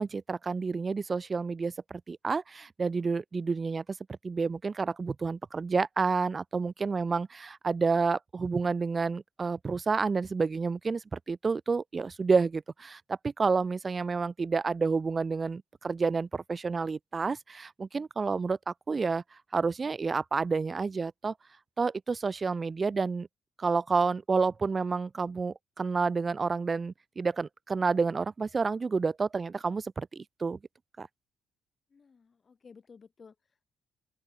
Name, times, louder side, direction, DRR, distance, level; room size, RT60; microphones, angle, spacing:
voice 1, 0.0-3.8 4.2-19.2 19.5-21.3 21.8-23.3 23.6-30.6 31.0-31.1, right 4 dB, 30° right, 0.8 m, -29 dB
voice 2, 22.5-23.2 31.9-33.6, left 5 dB, 40° left, 5.9 m, -56 dB
open air
cardioid pair, 90°, 0 cm